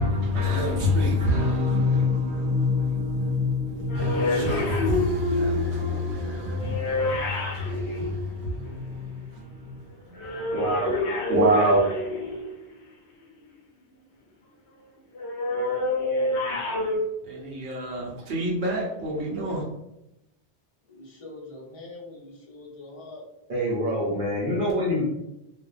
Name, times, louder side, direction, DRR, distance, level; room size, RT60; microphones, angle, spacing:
voice 1, 0.0-10.5 11.3-11.9 17.2-19.6, left 1 dB, 80° right, 1.0 m, -26 dB
sound 1, 3.9-8.9 10.1-12.7 15.1-17.0, left 2 dB, 75° left, 0.9 m, -28 dB
voice 2, 10.5-11.0 23.5-25.0, equal, 55° right, 0.8 m, -26 dB
voice 3, 20.9-23.3, left 2 dB, 40° left, 0.6 m, -43 dB
2.4 x 2.2 x 2.3 m
omnidirectional pair, 1.1 m